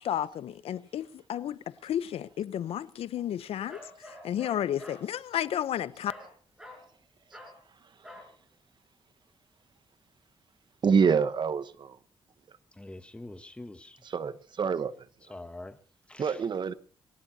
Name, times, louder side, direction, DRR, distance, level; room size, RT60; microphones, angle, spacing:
voice 1, 0.0-3.8 4.0-6.1, left 10 dB, 90° left, 0.7 m, -32 dB
Bark, 3.7-5.1 6.1-6.3 6.6-6.9 7.3-7.6 8.0-8.3, left 1 dB, 5° right, 6.4 m, -48 dB
voice 2, 10.8-12.0 14.1-15.1 16.2-16.7, right 6 dB, 50° right, 1.0 m, -26 dB
voice 3, 12.7-14.0 15.2-15.8 16.1-16.4, left 2 dB, 10° left, 1.1 m, -45 dB
21.5 x 18.5 x 2.8 m
cardioid pair, 110°, 10 cm